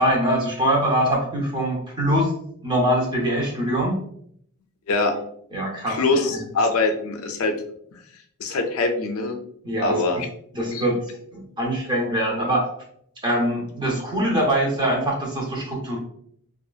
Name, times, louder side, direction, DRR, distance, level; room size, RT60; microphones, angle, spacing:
voice 1, 0.0-2.3 2.6-4.0 5.1-5.2 5.5-6.0 6.3-6.4 9.6-10.0 10.5-11.0 11.3-12.7 13.2-16.0, right 1 dB, 20° right, -3 dB, 0.7 m, -23 dB
voice 2, 5.9-7.5 8.4-9.4 9.8-10.3 10.7-10.8, left 3 dB, 75° left, 4 dB, 0.4 m, -23 dB
2.7 x 2.4 x 2.3 m, 0.67 s
head